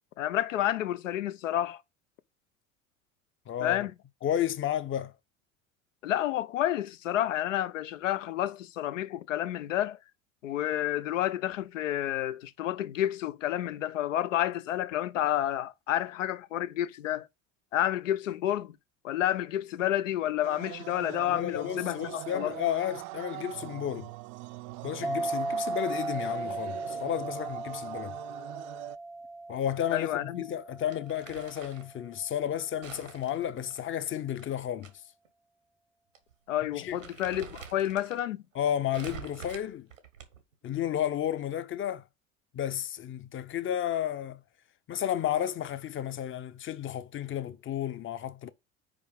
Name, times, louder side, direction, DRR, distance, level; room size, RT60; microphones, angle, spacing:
voice 1, 0.2-1.8 3.6-3.9 6.0-10.0 10.4-17.3 17.7-18.8 19.0-22.6 29.9-30.5 36.5-38.4, left 12 dB, 80° left, 0.6 m, -30 dB
voice 2, 3.5-3.8 4.2-5.1 21.3-24.1 24.8-28.2 29.5-34.9 36.7-37.0 38.5-39.9 40.6-42.0 42.5-44.4 44.9-48.5, left 10 dB, 30° left, 0.7 m, -32 dB
sound 1, 20.4-29.0, right 20 dB, 50° right, 0.5 m, -42 dB
sound 2, 25.0-32.1, right 2 dB, ahead, 0.6 m, -37 dB
Crumpling crinkling, 30.9-31.9 32.8-34.9 35.2-35.3 36.1-36.3 36.7-38.2 38.9-40.5, right 7 dB, 90° right, 1.1 m, -47 dB
5.1 x 4.8 x 5.1 m
hypercardioid pair, 70°, 37 cm